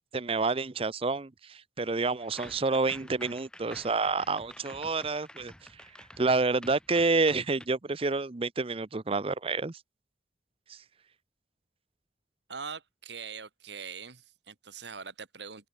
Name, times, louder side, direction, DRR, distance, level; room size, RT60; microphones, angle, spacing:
voice 1, 0.1-5.5 6.2-9.7, right 3 dB, 30° right, 0.7 m, -28 dB
sound 1, 2.2-7.7, left 1 dB, 5° left, 1.4 m, -50 dB
voice 2, 12.5-15.7, right 6 dB, 75° right, 2.0 m, -42 dB
open air
head